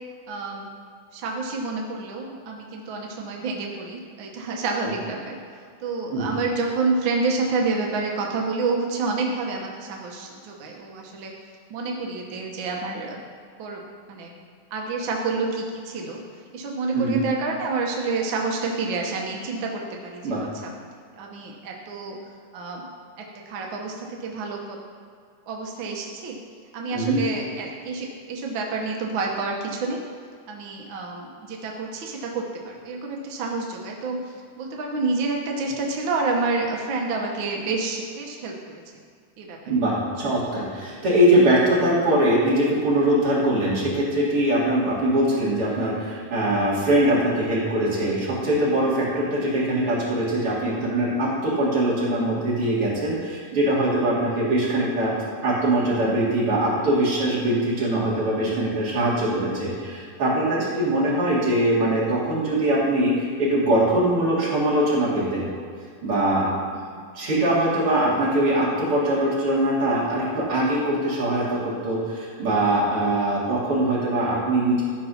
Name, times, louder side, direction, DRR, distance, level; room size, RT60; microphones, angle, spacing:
voice 1, 0.3-0.7 1.1-5.4 5.8-11.3 11.7-13.2 13.6-13.8 14.1-14.3 14.7-16.2 16.5-20.7 21.2-22.2 22.5-22.9 23.2-24.8 25.5-26.4 26.7-30.0 30.5-38.8 39.4-39.6 60.6-61.0 66.7-67.0, right 3 dB, 75° right, 0 dB, 1.1 m, -29 dB
voice 2, 39.7-55.1 55.4-65.5 66.0-66.5 67.1-74.8, right 1 dB, 45° right, -7 dB, 3.5 m, -22 dB
13.0 x 5.4 x 5.7 m, 2.2 s
omnidirectional pair, 3.8 m